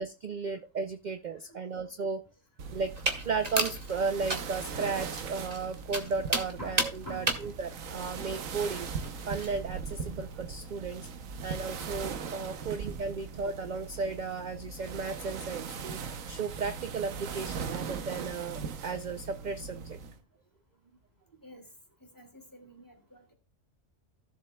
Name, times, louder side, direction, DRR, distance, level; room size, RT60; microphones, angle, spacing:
voice 1, 0.0-2.2 2.7-2.9 3.2-8.9 9.3-11.1 11.4-20.0, right 4 dB, 50° right, 8 dB, 0.6 m, -35 dB
voice 2, 1.3-1.9 6.6-7.6 21.4-21.7 22.0-23.3, right 1 dB, 15° left, 2 dB, 2.5 m, -47 dB
sound 1, 2.6-20.2, right 5 dB, 90° right, 1.3 m, -40 dB
sound 2, 3.0-9.6, right 2 dB, 30° right, 1.6 m, -34 dB
16.0 x 7.3 x 2.2 m, 0.31 s
omnidirectional pair, 1.3 m